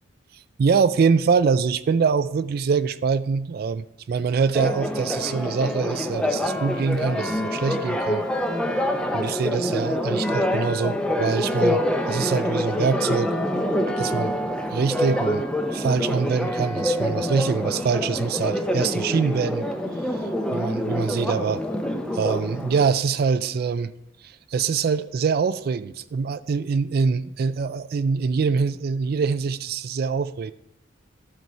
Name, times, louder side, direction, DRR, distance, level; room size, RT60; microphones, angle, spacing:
voice 1, 0.3-8.2 9.1-13.4 14.0-14.4 14.7-19.7 20.1-20.2 20.5-21.6 22.1-23.9 24.2-30.5, right 5 dB, 50° right, 15 dB, 0.3 m, -24 dB
Church bell, 4.5-22.9, left 1 dB, 5° left, 0.6 m, -26 dB
12.0 x 4.6 x 5.5 m, 0.84 s
head